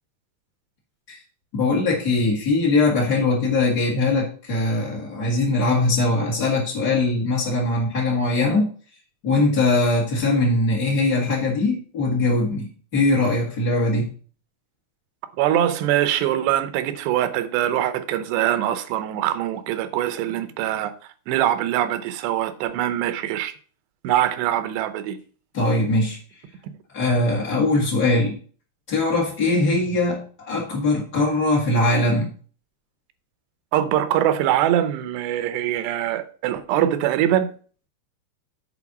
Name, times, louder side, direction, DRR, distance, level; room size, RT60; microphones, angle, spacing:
voice 1, 1.5-8.7 9.2-14.1 25.5-26.2 26.9-28.4 28.9-32.3, left 2 dB, 45° left, 1.3 m, -21 dB
voice 2, 15.4-20.9 21.3-23.5 24.0-25.2 33.7-37.5, right 12 dB, 85° right, 3.0 m, -23 dB
8.3 x 4.6 x 6.0 m
omnidirectional pair, 4.8 m